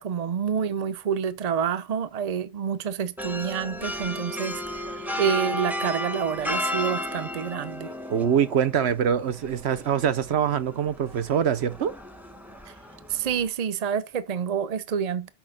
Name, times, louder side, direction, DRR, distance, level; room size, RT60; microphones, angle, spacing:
voice 1, 0.0-4.8 5.2-7.9 13.1-15.3, right 7 dB, 40° right, 0.7 m, -28 dB
sound 1, 3.2-13.5, left 1 dB, ahead, 1.0 m, -34 dB
voice 2, 8.1-12.0, right 8 dB, 75° right, 1.0 m, -24 dB
6.4 x 5.7 x 6.4 m
omnidirectional pair, 1.1 m